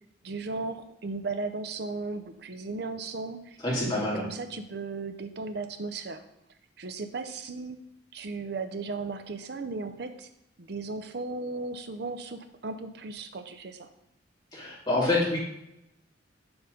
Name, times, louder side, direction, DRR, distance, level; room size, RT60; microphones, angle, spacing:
voice 1, 0.2-6.2 6.8-7.8 8.1-10.3 10.6-13.9, right 3 dB, 60° right, 8 dB, 0.6 m, -36 dB
voice 2, 3.6-4.2 14.5-15.4, left 2 dB, 25° left, -6 dB, 2.4 m, -26 dB
7.1 x 3.9 x 5.0 m, 0.82 s
head